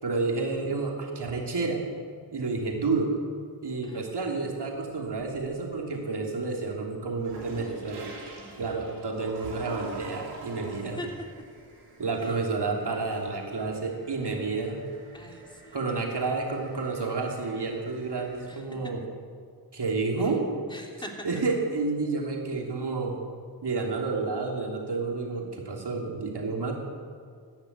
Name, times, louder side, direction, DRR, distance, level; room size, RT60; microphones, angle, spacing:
voice 1, 0.0-1.8 2.3-3.1 3.6-8.1 8.6-11.0 12.0-14.8 15.7-19.0 19.7-20.4 21.2-23.2 23.6-26.7, right 3 dB, 50° right, 0 dB, 3.2 m, -30 dB
sound 1, 4.7-5.7 6.1-18.4, right 3 dB, 90° right, 2.7 m, -47 dB
voice 2, 15.1-15.8 18.5-18.6 20.7-21.3, left 1 dB, 10° left, 1 dB, 3.2 m, -42 dB
15.0 x 5.9 x 9.6 m, 2.1 s
supercardioid pair, 40°, 50 cm